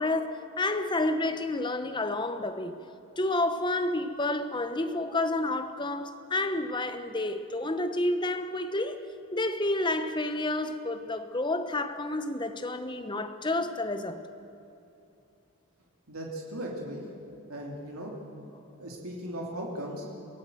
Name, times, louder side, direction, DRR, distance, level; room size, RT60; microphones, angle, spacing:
voice 1, 0.0-2.8 3.2-14.2, left 2 dB, 20° left, 1.0 m, -30 dB
voice 2, 16.1-17.0 17.5-18.1 18.8-20.1, right 1 dB, 85° right, 2.8 m, -37 dB
27.0 x 16.5 x 7.8 m
head